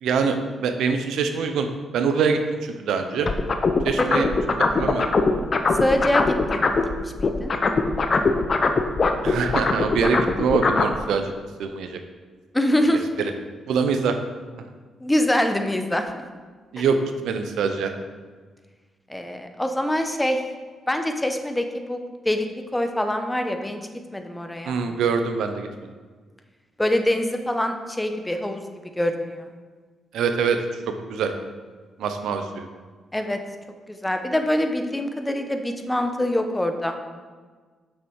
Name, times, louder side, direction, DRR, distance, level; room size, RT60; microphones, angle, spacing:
voice 1, 0.0-1.7 1.9-3.3 3.8-4.3 4.7-5.1 9.2-11.3 11.6-12.0 13.2-13.3 13.7-14.2 16.7-17.0 17.2-17.9 24.6-25.9 30.1-30.6 30.9-31.3 32.0-32.7, right 5 dB, 80° right, 6 dB, 0.7 m, -24 dB
sound 1, 3.3-6.9 7.2-11.0, left 4 dB, 50° left, 0.7 m, -21 dB
voice 2, 5.8-6.7 7.0-7.5 12.5-13.0 15.0-16.2 19.1-20.4 20.9-22.0 22.2-22.5 22.7-23.8 24.1-24.8 26.8-28.6 29.0-29.5 33.1-33.4 33.9-37.0, left 1 dB, 15° left, 6 dB, 0.9 m, -24 dB
6.5 x 6.2 x 4.7 m, 1.5 s
supercardioid pair, 55°, 0 cm